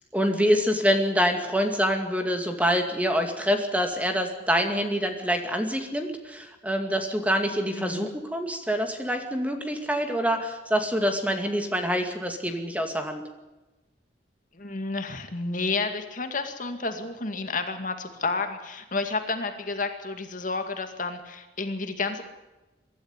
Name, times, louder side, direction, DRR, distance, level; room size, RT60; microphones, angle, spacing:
voice 1, 0.1-13.2, equal, 10° right, 5 dB, 2.3 m, -26 dB
voice 2, 7.7-8.1 14.5-22.2, left 3 dB, 45° left, 7 dB, 2.2 m, -31 dB
24.0 x 13.0 x 9.8 m, 1.1 s
head